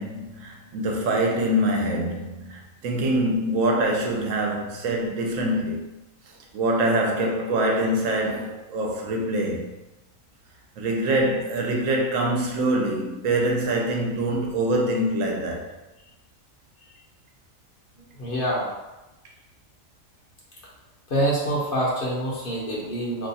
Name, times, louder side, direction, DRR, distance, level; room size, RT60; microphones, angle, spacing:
voice 1, 0.0-5.9 6.5-9.7 10.8-15.7, right 1 dB, 80° right, 1.0 m, -24 dB
voice 2, 18.2-18.7 21.1-23.3, right 1 dB, 50° left, 0.7 m, -25 dB
2.7 x 2.3 x 3.9 m
omnidirectional pair, 1.4 m